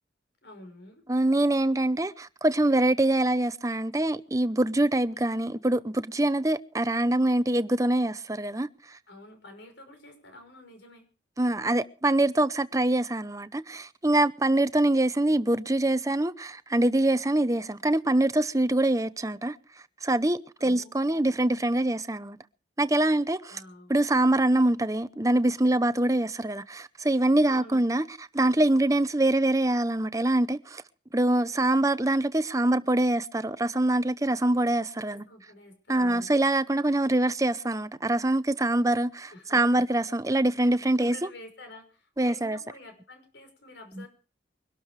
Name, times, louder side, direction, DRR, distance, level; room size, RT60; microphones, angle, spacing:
voice 1, 0.4-1.0 9.1-11.0 20.6-21.3 23.5-23.9 27.4-27.8 35.1-36.3 39.3-39.6 40.6-44.1, left 1 dB, 80° left, 5.7 m, -49 dB
voice 2, 1.1-9.0 11.4-19.6 20.0-22.4 22.8-23.5 23.9-28.1 28.3-30.8 31.1-35.2 35.9-41.1 42.2-42.6 44.0-44.1, right 1 dB, 20° right, 0.7 m, -24 dB
23.0 x 12.5 x 4.8 m
head